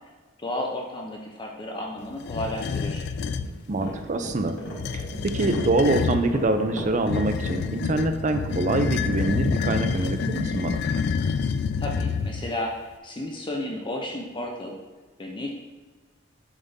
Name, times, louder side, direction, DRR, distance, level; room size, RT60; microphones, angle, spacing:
voice 1, 0.4-3.1 11.8-12.8 13.0-14.8 15.2-15.5, left 1 dB, 25° left, 0 dB, 0.7 m, -32 dB
sound 1, 2.2-3.5 4.7-6.3 7.1-12.6, left 5 dB, 60° left, 0.3 m, -28 dB
sound 2, 3.3-9.9, equal, 75° left, 2.0 m, -37 dB
voice 2, 3.7-4.5 4.9-5.1 5.3-10.8, right 2 dB, 40° right, 7 dB, 0.5 m, -25 dB
7.1 x 3.7 x 4.1 m, 1.3 s
head